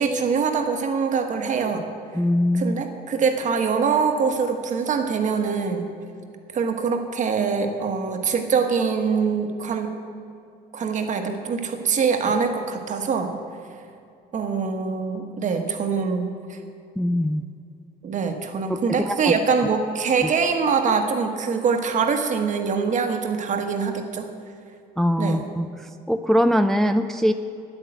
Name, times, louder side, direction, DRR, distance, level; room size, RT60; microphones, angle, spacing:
voice 1, 0.0-1.9 2.5-5.9 6.5-9.9 10.7-13.3 14.3-16.6 18.0-24.3 25.2-25.5, right 5 dB, 45° right, 6 dB, 1.3 m, -24 dB
voice 2, 2.2-2.8 17.0-17.4 18.7-18.8 19.0-19.2 25.0-25.7 26.1-27.3, equal, ahead, 8 dB, 0.3 m, -21 dB
9.8 x 8.9 x 7.8 m, 2.5 s
cardioid pair, 110°, 17 cm